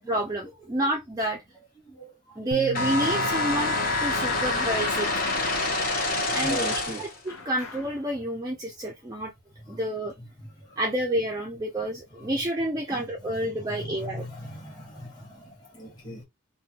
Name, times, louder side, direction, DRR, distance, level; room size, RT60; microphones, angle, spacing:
voice 1, 0.1-1.4 2.4-5.3 6.3-6.6 7.0-9.3 9.7-10.1 10.8-14.2, right 1 dB, 15° right, 0.4 m, -29 dB
voice 2, 1.8-2.5 6.3-7.1 9.5-9.8 10.2-10.8 12.1-12.5 12.9-16.2, equal, 20° left, 1.2 m, -40 dB
sound 1, 2.5-5.8, right 5 dB, 85° right, 0.5 m, -41 dB
sound 2, 2.7-7.2, left 2 dB, 40° left, 0.9 m, -27 dB
sound 3, 3.0-6.0 7.3-8.1, left 4 dB, 70° left, 0.9 m, -37 dB
3.3 x 2.2 x 2.8 m
head